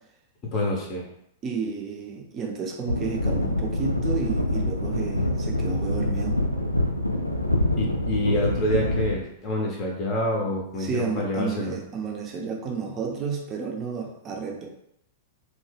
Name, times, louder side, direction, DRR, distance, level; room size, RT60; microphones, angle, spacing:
voice 1, 0.4-1.1 7.8-11.8, left 1 dB, 30° left, -1 dB, 0.7 m, -27 dB
voice 2, 1.4-6.4 10.8-14.7, right 5 dB, 30° right, 0 dB, 0.6 m, -31 dB
sound 1, 2.9-9.2, left 1 dB, 90° left, 0.3 m, -25 dB
2.9 x 2.1 x 3.2 m, 0.76 s
figure-of-eight pair, 100°, 0 cm